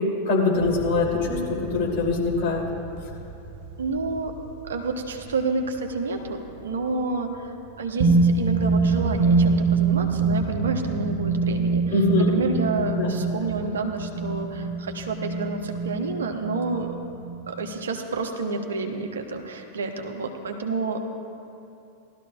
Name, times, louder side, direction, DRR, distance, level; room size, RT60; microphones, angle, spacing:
voice 1, 0.2-2.6 11.9-12.3 13.0-13.2, left 3 dB, 45° left, -2 dB, 3.1 m, -23 dB
sound 1, 0.6-5.8 8.0-17.5, right 4 dB, 50° right, 1.4 m, -25 dB
voice 2, 3.8-4.3 4.6-11.8 12.2-16.9 17.5-21.0, right 3 dB, 65° right, 4 dB, 1.0 m, -29 dB
19.0 x 13.0 x 2.5 m, 2.7 s
figure-of-eight pair, 90°, 0 cm